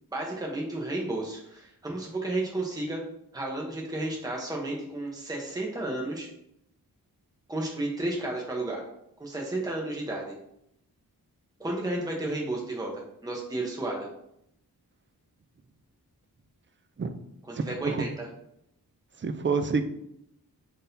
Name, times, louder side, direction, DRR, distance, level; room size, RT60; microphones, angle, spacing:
voice 1, 0.1-3.0 3.3-6.3 7.5-8.8 9.2-10.4 11.6-14.1 17.4-18.3, right 2 dB, 10° right, -1 dB, 0.9 m, -32 dB
voice 2, 17.6-18.0 19.2-19.8, right 4 dB, 30° right, 9 dB, 0.5 m, -28 dB
3.9 x 2.7 x 3.9 m, 0.76 s
cardioid pair, 45°, 39 cm